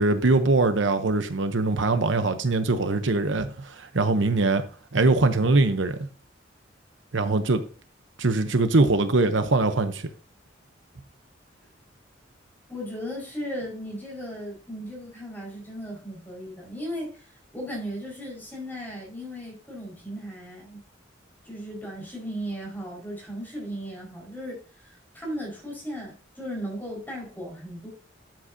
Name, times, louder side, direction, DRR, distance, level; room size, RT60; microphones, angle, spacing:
voice 1, 0.0-4.6 4.9-6.1 7.1-7.6 8.2-10.1, right 3 dB, 75° right, 0.9 m, -22 dB
voice 2, 12.7-17.3 17.5-20.8 21.4-27.9, equal, 10° left, 4.9 m, -36 dB
12.0 x 7.7 x 2.7 m
head